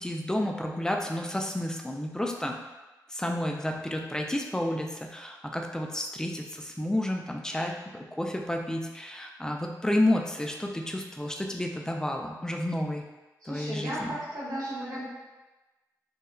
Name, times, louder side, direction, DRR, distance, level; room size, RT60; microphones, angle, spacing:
voice 1, 0.0-2.6 3.1-7.8 8.2-13.0 13.5-14.2, left 1 dB, 10° left, 1 dB, 0.3 m, -30 dB
voice 2, 13.4-15.0, equal, 65° right, -8 dB, 1.0 m, -35 dB
2.9 x 2.3 x 2.3 m, 1.1 s
cardioid pair, 60°, 7 cm